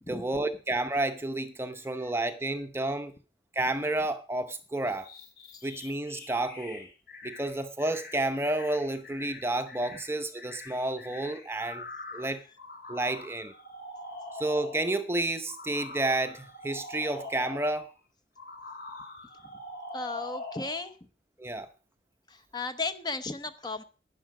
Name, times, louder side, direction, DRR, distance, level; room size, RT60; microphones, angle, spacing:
voice 1, 0.1-3.1 3.5-5.1 5.6-6.9 7.2-11.8 12.1-12.4 12.9-13.5 14.4-17.9 21.4-21.7, right 2 dB, 15° right, 8 dB, 0.8 m, -30 dB
voice 2, 1.7-2.1 5.5-5.6 9.9-10.0 19.9-21.0 22.3-23.8, left 3 dB, 25° left, 9 dB, 0.9 m, -36 dB
sound 1, 4.8-15.0 15.5-17.9 18.4-20.9, left 2 dB, 60° left, 2.7 m, -44 dB
12.0 x 10.0 x 4.9 m, 0.34 s
head